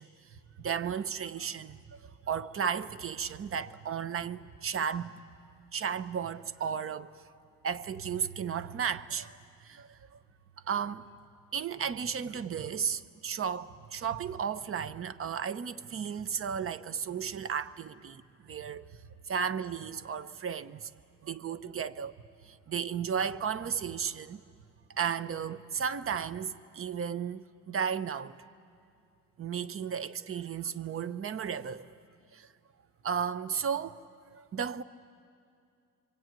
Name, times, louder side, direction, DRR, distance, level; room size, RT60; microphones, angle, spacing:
voice 1, 0.0-5.1 5.7-7.1 7.6-9.3 9.6-10.2 10.6-11.1 11.5-18.9 19.3-20.9 21.2-22.1 22.4-24.4 25.0-28.4 29.4-31.9 32.3-32.5 33.0-34.8, right 7 dB, 45° right, 0.9 m, -34 dB
26.0 x 23.5 x 9.2 m
cardioid pair, 90°, 30 cm